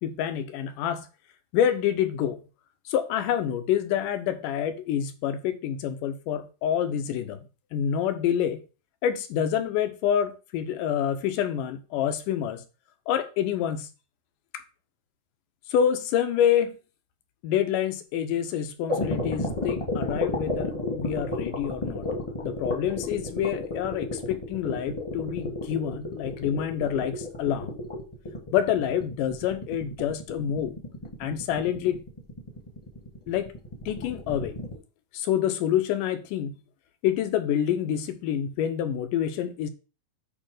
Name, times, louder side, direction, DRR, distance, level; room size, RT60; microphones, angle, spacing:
voice 1, 0.0-1.1 1.5-2.4 2.9-8.6 9.0-12.6 13.1-13.9 14.5-14.6 15.7-16.7 17.4-22.1 22.4-27.8 28.5-30.8 31.2-32.0 33.3-33.5 33.9-34.6 35.1-36.6 37.0-39.7, left 9 dB, 75° left, 2.3 m, -27 dB
sound 1, 18.9-34.7, left 2 dB, 15° left, 1.2 m, -32 dB
8.6 x 3.2 x 6.4 m
omnidirectional pair, 4.0 m